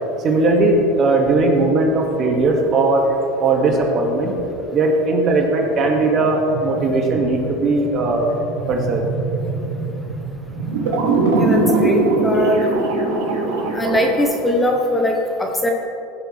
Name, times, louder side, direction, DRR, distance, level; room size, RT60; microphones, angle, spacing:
voice 1, 0.2-3.1 3.4-4.3 4.7-8.3 8.7-9.0, right 2 dB, 40° right, 1 dB, 1.9 m, -18 dB
sound 1, 5.6-14.2, right 3 dB, 85° right, 2.4 m, -22 dB
voice 2, 11.4-12.7 13.7-15.7, equal, 10° left, 2 dB, 1.0 m, -21 dB
16.5 x 7.1 x 3.3 m, 2.9 s
supercardioid pair, 105°, 0 cm